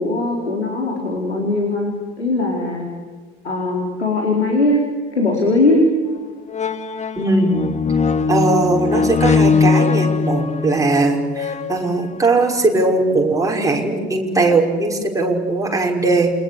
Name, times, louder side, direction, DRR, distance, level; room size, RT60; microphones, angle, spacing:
voice 1, 0.0-2.9 3.4-4.8 5.1-5.8, left 2 dB, 85° left, 0 dB, 4.6 m, -19 dB
sound 1, 6.1-6.2 6.5-12.4 13.1-13.2, left 5 dB, 20° left, 1.6 m, -20 dB
voice 2, 7.2-7.5 8.3-16.3, right 2 dB, 10° right, 0 dB, 5.9 m, -19 dB
28.5 x 24.0 x 8.3 m, 1.5 s
figure-of-eight pair, 70°, 32 cm